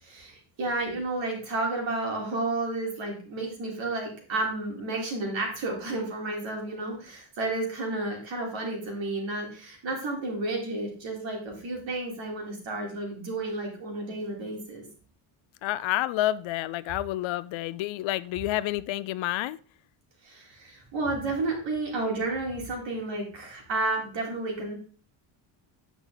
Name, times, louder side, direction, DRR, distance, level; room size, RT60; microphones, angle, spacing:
voice 1, 0.0-14.9 20.2-24.8, right 2 dB, 60° right, 4.1 m, -31 dB
voice 2, 15.6-19.6, left 15 dB, 65° left, 0.6 m, -29 dB
9.6 x 6.0 x 3.9 m
cardioid pair, 110°, 50 cm